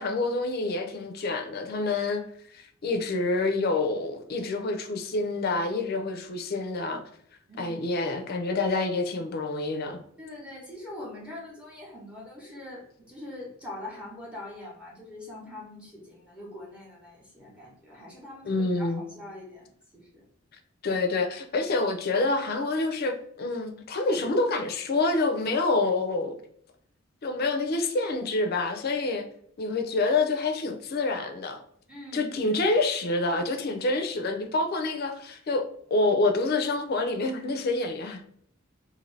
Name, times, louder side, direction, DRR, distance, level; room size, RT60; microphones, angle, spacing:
voice 1, 0.0-2.3 2.5-7.0 7.6-10.0 18.4-19.0 20.8-26.3 27.2-29.3 29.6-31.6 32.1-35.6 35.9-38.2, left 3 dB, 50° left, 0.4 m, -27 dB
voice 2, 7.5-7.8 10.2-20.2 31.9-32.7, left 1 dB, 5° right, 0.8 m, -43 dB
2.6 x 2.6 x 3.2 m
head